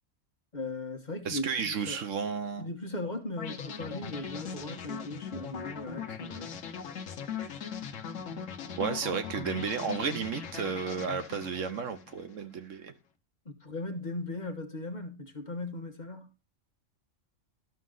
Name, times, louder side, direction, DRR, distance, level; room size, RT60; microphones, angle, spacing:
voice 1, 0.5-2.0 2.6-6.6 13.4-16.3, left 2 dB, 35° left, 1.3 m, -38 dB
voice 2, 1.2-2.7 8.8-12.9, right 6 dB, 75° right, 1.3 m, -33 dB
sound 1, 3.4-12.4, left 7 dB, 75° left, 1.2 m, -40 dB
12.0 x 6.2 x 3.8 m
omnidirectional pair, 1.3 m